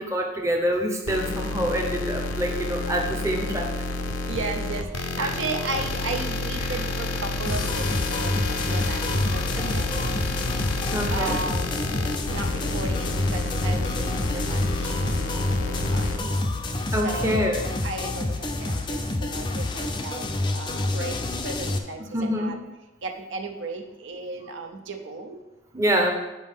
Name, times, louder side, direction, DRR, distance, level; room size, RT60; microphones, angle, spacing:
voice 1, 0.0-3.7 5.2-5.3 10.6-11.4 16.9-17.6 22.1-22.6 25.7-26.1, equal, 15° right, 1 dB, 0.8 m, -26 dB
sound 1, 1.1-16.2, left 2 dB, 85° left, 0.6 m, -29 dB
voice 2, 4.3-10.0 11.1-11.8 12.3-15.3 15.7-16.3 16.9-21.2 21.4-22.6 23.0-25.4, right 3 dB, 65° right, 4 dB, 0.7 m, -35 dB
sound 2, 7.5-21.8, left 2 dB, 20° left, 0.5 m, -28 dB
9.3 x 5.2 x 3.6 m, 1.0 s
head